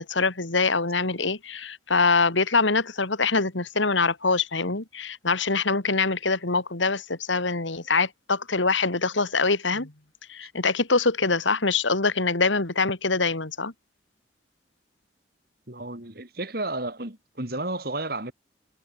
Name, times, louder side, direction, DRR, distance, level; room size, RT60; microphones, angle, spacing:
voice 1, 0.0-9.9 10.3-13.7, left 4 dB, 80° left, 2.6 m, -24 dB
voice 2, 15.7-18.3, right 2 dB, 50° right, 3.2 m, -32 dB
head